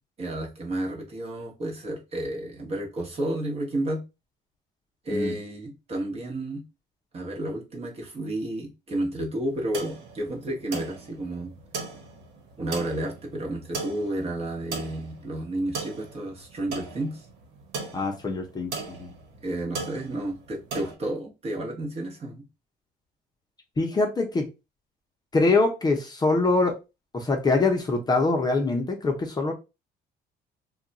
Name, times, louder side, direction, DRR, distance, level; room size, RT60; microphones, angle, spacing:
voice 1, 0.2-4.0 5.0-6.6 7.1-11.5 12.6-17.2 19.4-22.4, right 1 dB, 35° right, 1.0 m, -31 dB
sound 1, 9.4-20.9, right 4 dB, 85° right, 1.1 m, -38 dB
voice 2, 17.9-19.1 23.8-24.4 25.3-26.8 27.1-29.5, left 3 dB, 25° left, 0.6 m, -24 dB
2.3 x 2.2 x 3.9 m
cardioid pair, 110°, 17 cm